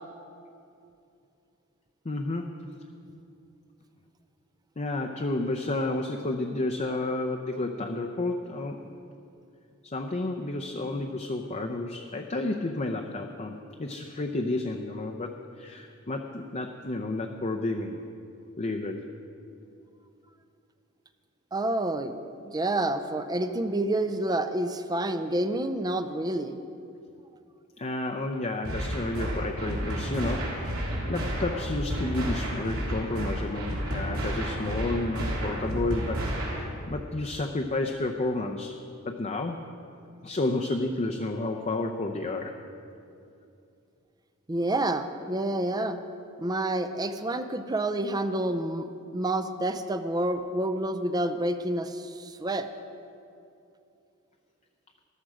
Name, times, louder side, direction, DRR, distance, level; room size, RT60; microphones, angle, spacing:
voice 1, 2.0-2.5 4.8-8.8 9.8-18.0 18.6-19.1 27.8-30.8 31.1-38.8 39.0-39.6 40.2-42.5, left 2 dB, 35° left, 3 dB, 0.6 m, -31 dB
voice 2, 21.5-26.6 44.5-46.0 46.4-48.9 49.1-52.7, right 1 dB, 20° right, 9 dB, 0.5 m, -28 dB
sound 1, 28.6-36.6, equal, 75° right, 3.3 m, -31 dB
14.0 x 12.5 x 4.9 m, 2.6 s
head